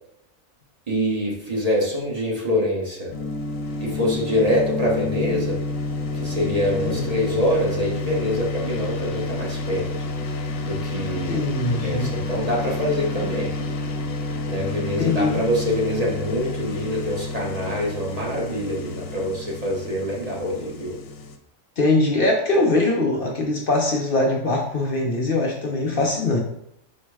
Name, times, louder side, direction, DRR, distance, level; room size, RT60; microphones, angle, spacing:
voice 1, 0.9-3.1 3.8-5.6 6.1-9.9 10.6-13.5 14.5-21.0, equal, 30° right, -3 dB, 0.9 m, -25 dB
sound 1, 3.1-21.4, left 3 dB, 75° left, 1.0 m, -29 dB
voice 2, 11.3-12.1 15.0-15.4 21.8-26.4, left 2 dB, 55° left, 0 dB, 0.6 m, -22 dB
4.5 x 2.1 x 4.7 m, 0.77 s
omnidirectional pair, 1.4 m